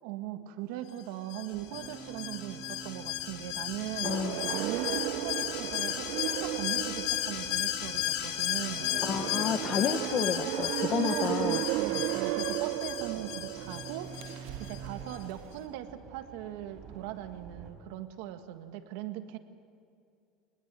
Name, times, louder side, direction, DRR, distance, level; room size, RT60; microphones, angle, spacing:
voice 1, 0.0-4.1 4.4-8.9 10.9-14.1 14.6-19.4, right 13 dB, 75° right, 7 dB, 1.7 m, -39 dB
Alarm, 1.3-14.8 15.1-15.2, left 13 dB, 70° left, 2.1 m, -35 dB
sound 1, 1.5-17.7, right 4 dB, 30° right, 4.1 m, -49 dB
voice 2, 4.0-4.4 9.0-11.6, left 8 dB, 35° left, 13 dB, 0.8 m, -31 dB
sound 2, 4.0-15.6, right 17 dB, 60° right, 0.4 m, -35 dB
23.5 x 20.0 x 7.6 m, 2.5 s
cardioid pair, 165°, 0 cm